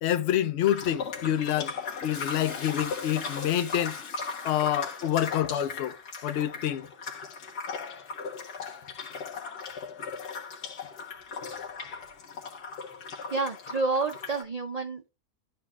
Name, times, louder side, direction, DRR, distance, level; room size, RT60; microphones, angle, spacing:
voice 1, 0.0-1.7 2.0-4.0 4.4-6.0 6.2-6.9, left 11 dB, 70° left, 0.6 m, -27 dB
sound 1, 0.6-14.4, left 5 dB, 85° left, 1.8 m, -38 dB
Toilet flush, 0.9-5.2, left 5 dB, 50° left, 1.3 m, -43 dB
voice 2, 13.3-15.1, right 4 dB, 85° right, 0.3 m, -29 dB
13.0 x 4.4 x 2.4 m
omnidirectional pair, 1.6 m